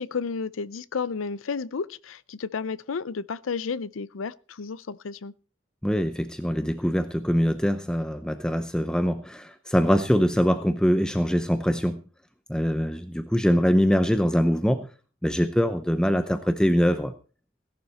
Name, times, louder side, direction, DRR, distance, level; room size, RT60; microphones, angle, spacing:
voice 1, 0.0-5.3, left 5 dB, 90° left, 0.5 m, -32 dB
voice 2, 5.8-12.0 12.5-14.9 15.2-17.1, equal, 5° left, 0.7 m, -23 dB
17.0 x 11.5 x 4.2 m
head